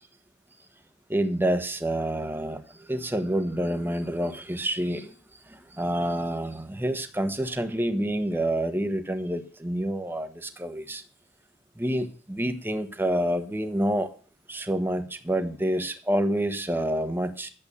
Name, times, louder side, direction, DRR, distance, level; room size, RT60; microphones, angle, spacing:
voice 1, 1.1-5.1 5.5-11.0 11.8-14.1 14.5-17.5, right 1 dB, 10° right, 8 dB, 1.2 m, -28 dB
11.0 x 8.0 x 7.0 m, 0.40 s
head